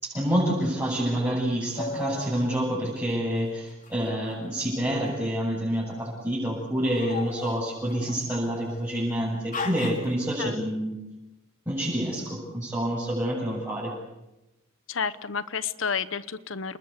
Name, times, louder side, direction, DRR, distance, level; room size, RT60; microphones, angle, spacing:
voice 1, 0.0-11.0 11.7-14.0, equal, 10° right, -8 dB, 7.6 m, -28 dB
sound 1, 1.8-2.3 3.8-5.0 5.8-6.2 6.8-8.9 9.5-10.1, left 3 dB, 40° left, 2.8 m, -37 dB
voice 2, 14.9-16.8, left 6 dB, 70° left, 14 dB, 1.0 m, -30 dB
29.5 x 20.5 x 8.3 m, 0.94 s
head